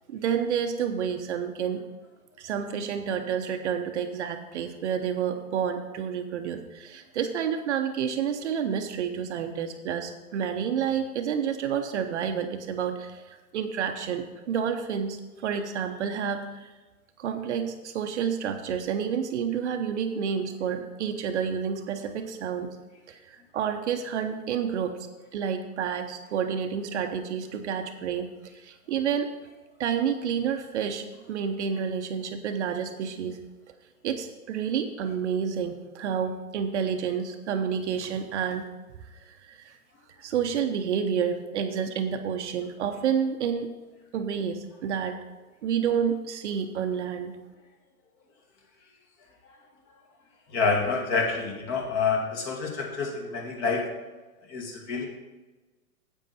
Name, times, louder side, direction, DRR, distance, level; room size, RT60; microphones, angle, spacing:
voice 1, 0.1-1.8 2.4-16.7 17.2-22.7 23.1-25.0 25.3-28.3 28.6-29.3 29.8-33.4 34.0-38.6 39.3-39.7 40.2-43.7 44.1-45.2 45.6-47.3, right 7 dB, 50° right, 6 dB, 0.9 m, -29 dB
voice 2, 50.5-53.9 54.5-55.1, left 4 dB, 30° left, 1 dB, 2.0 m, -27 dB
9.2 x 8.2 x 4.2 m, 1.2 s
hypercardioid pair, 130°, 45 cm